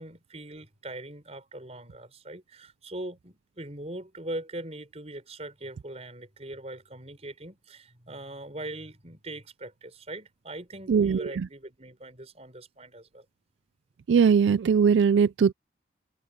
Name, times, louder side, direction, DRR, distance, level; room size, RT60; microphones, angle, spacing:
voice 1, 0.0-13.2, right 1 dB, 35° right, 5.5 m, -41 dB
voice 2, 10.9-11.3 14.1-15.5, right 6 dB, 85° right, 0.4 m, -20 dB
head